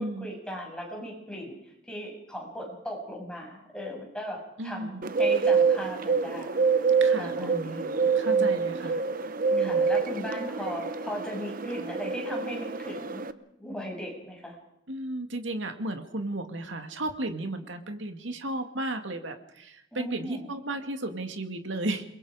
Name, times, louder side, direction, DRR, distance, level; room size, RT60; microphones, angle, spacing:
voice 1, 0.0-1.6 1.9-6.6 7.2-8.7 9.6-13.3 13.6-14.6 19.9-20.5, equal, 5° left, -1 dB, 6.9 m, -38 dB
voice 2, 4.6-5.1 7.0-9.0 9.5-9.9 14.9-22.0, right 2 dB, 75° right, 6 dB, 2.3 m, -34 dB
Bird, 5.0-13.3, right 5 dB, 45° right, 0.9 m, -26 dB
29.0 x 22.0 x 5.0 m, 0.80 s
head